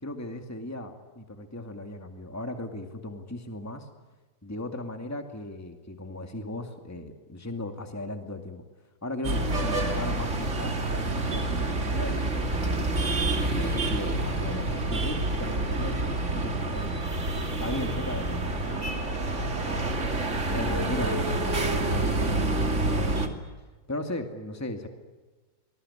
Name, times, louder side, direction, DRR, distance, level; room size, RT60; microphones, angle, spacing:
voice 1, 0.0-3.9 4.4-8.6 9.0-12.9 13.4-17.0 17.6-20.0 20.5-23.2 23.9-24.9, left 1 dB, 10° left, 5 dB, 2.2 m, -37 dB
sound 1, 9.2-23.3, right 2 dB, 45° right, 2.9 m, -28 dB
25.0 x 20.5 x 9.9 m, 1.3 s
omnidirectional pair, 1.7 m